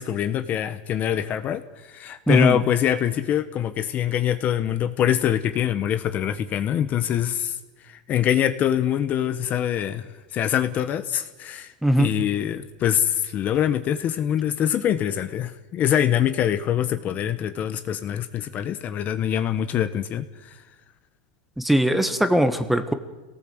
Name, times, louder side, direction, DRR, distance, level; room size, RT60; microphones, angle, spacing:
voice 1, 0.0-7.6 7.8-10.0 10.3-11.7 12.0-20.5, left 10 dB, 35° left, 11 dB, 1.2 m, -24 dB
voice 2, 2.3-2.6 11.8-12.1 21.6-22.9, right 1 dB, ahead, 9 dB, 1.6 m, -20 dB
26.5 x 18.0 x 8.0 m, 1.2 s
supercardioid pair, 130°, 5 cm